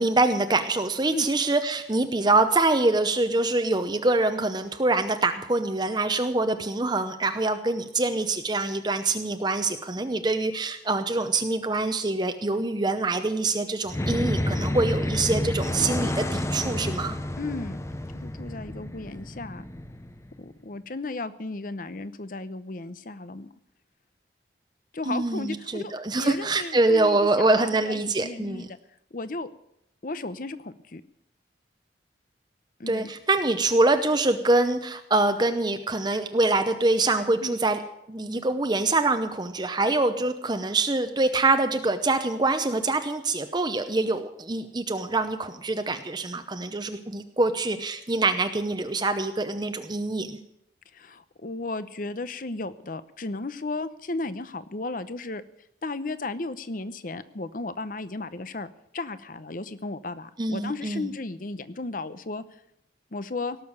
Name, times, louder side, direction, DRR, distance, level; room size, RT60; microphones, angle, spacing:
voice 1, 0.0-17.2 25.1-28.7 32.9-37.8 38.1-50.4 60.4-61.1, right 2 dB, 25° right, 7 dB, 0.8 m, -25 dB
sound 1, 13.9-20.5, left 1 dB, 15° left, 0.7 m, -30 dB
voice 2, 17.4-17.8 18.1-19.6 20.4-23.5 24.9-25.9 26.2-28.8 29.1-29.5 30.0-31.0 32.8-33.1 37.4-37.6 50.9-55.4 55.8-62.6 63.1-63.6, left 3 dB, 50° left, 13 dB, 0.8 m, -34 dB
18.0 x 6.8 x 9.7 m, 0.78 s
head